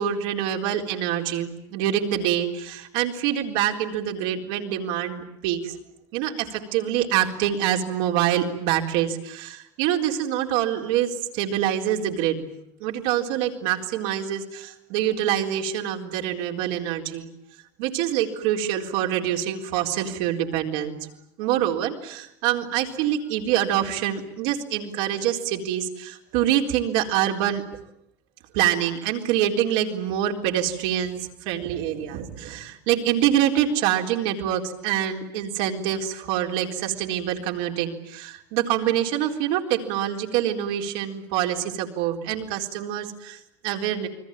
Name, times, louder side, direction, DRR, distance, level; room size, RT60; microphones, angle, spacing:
voice 1, 0.0-5.8 6.1-12.5 12.8-17.3 17.8-21.0 21.4-27.6 28.5-44.1, right 11 dB, 75° right, 2 dB, 4.1 m, -25 dB
29.5 x 22.0 x 9.0 m, 0.76 s
supercardioid pair, 100°, 10 cm